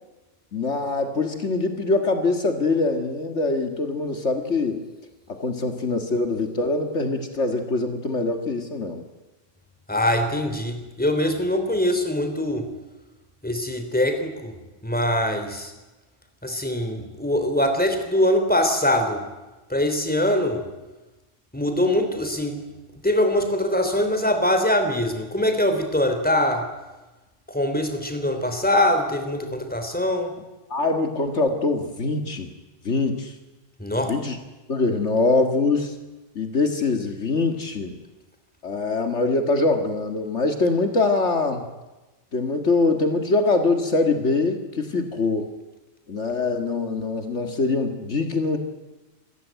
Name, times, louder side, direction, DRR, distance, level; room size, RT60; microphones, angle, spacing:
voice 1, 0.5-4.8 5.3-9.0 30.7-32.5 32.8-33.3 34.0-34.4 34.7-36.0 36.4-38.0 38.6-41.6 42.3-45.5 46.1-48.6, left 3 dB, 65° left, 6 dB, 2.2 m, -23 dB
voice 2, 9.9-12.7 13.4-14.5 14.8-15.7 16.4-19.3 19.7-20.6 21.5-22.6 23.0-26.7 27.5-30.3 33.8-34.2, left 1 dB, 5° left, 6 dB, 3.1 m, -23 dB
27.0 x 15.0 x 9.3 m, 1.1 s
omnidirectional pair, 1.3 m